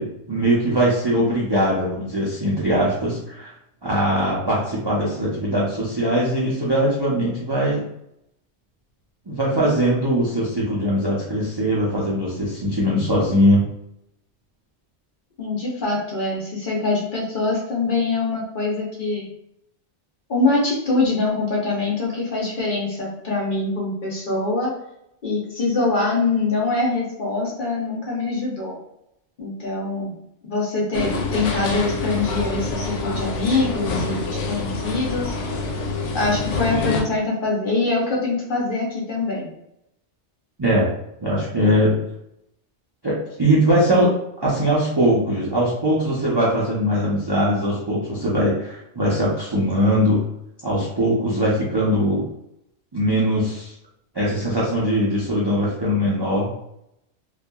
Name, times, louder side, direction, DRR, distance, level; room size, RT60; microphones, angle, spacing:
voice 1, 0.0-3.5 3.8-7.8 9.3-13.7 40.6-40.9 41.2-41.9 43.0-44.1 44.4-50.2 50.6-52.3 52.9-53.7 54.1-56.5, equal, 35° right, -6 dB, 0.4 m, -21 dB
voice 2, 15.4-19.3 20.3-24.7 25.2-28.8 29.4-30.1 30.4-35.3 36.1-39.5, left 3 dB, 50° left, -4 dB, 0.8 m, -24 dB
sound 1, 30.9-37.0, left 3 dB, 85° left, 0.9 m, -26 dB
2.7 x 2.3 x 2.2 m, 0.79 s
omnidirectional pair, 1.2 m